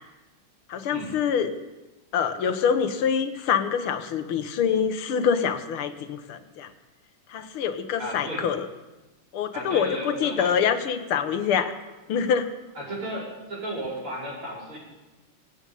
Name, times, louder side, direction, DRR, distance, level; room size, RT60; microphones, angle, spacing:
voice 1, 0.7-1.5 2.1-6.7 7.3-8.7 9.3-11.8 12.1-12.5, left 7 dB, 80° left, 9 dB, 1.9 m, -25 dB
voice 2, 8.0-8.5 9.5-10.6 12.8-14.8, right 1 dB, 90° right, -5 dB, 6.2 m, -34 dB
25.0 x 8.9 x 5.4 m, 1.1 s
omnidirectional pair, 2.3 m